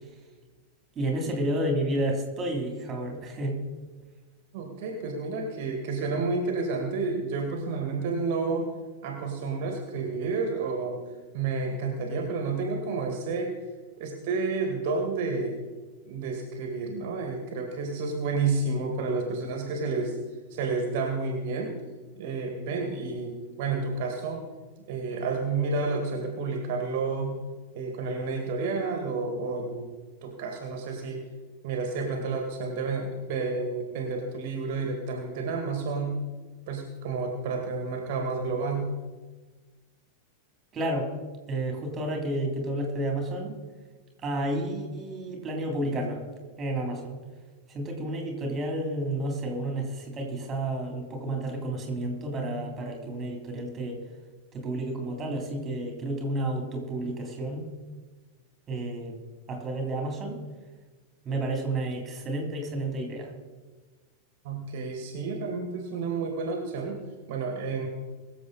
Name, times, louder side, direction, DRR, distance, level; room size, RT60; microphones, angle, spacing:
voice 1, 0.9-3.6 40.7-41.1 41.5-43.6 44.2-46.2 46.6-47.2 47.7-54.0 54.5-57.7 58.7-59.2 59.5-60.4 61.2-63.3, right 1 dB, 25° right, 2 dB, 3.4 m, -31 dB
voice 2, 4.5-8.7 9.0-11.0 11.3-13.5 14.0-15.5 16.1-20.2 20.5-21.7 22.2-23.3 23.6-24.4 24.9-27.4 27.7-29.9 30.2-31.2 31.6-36.2 36.7-38.9 64.4-67.9, right 4 dB, 50° right, 3 dB, 2.0 m, -30 dB
22.5 x 7.5 x 4.2 m, 1.3 s
figure-of-eight pair, 90°, 0 cm